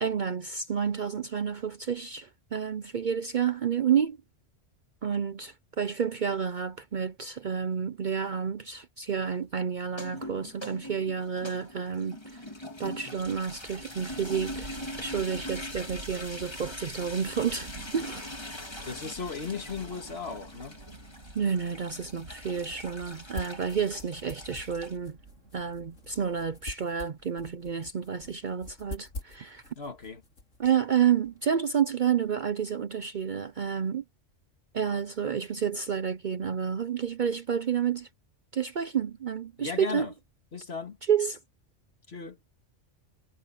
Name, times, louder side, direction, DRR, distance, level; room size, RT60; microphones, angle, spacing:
voice 1, 0.0-4.2 5.0-12.5 12.8-18.3 21.3-25.2 25.5-29.6 30.6-34.0 34.7-38.1 38.5-40.1 41.1-41.4, right 7 dB, 50° right, 0.7 m, -30 dB
sound 1, 9.8-25.0, left 1 dB, 20° left, 1.9 m, -42 dB
sound 2, 12.1-26.7, right 2 dB, 75° right, 3.2 m, -50 dB
voice 2, 18.9-20.8 29.8-30.2 39.6-40.1 40.5-41.0 42.1-42.4, left 5 dB, 55° left, 2.2 m, -36 dB
sound 3, 21.7-31.5, left 2 dB, 80° left, 2.9 m, -47 dB
omnidirectional pair, 1.3 m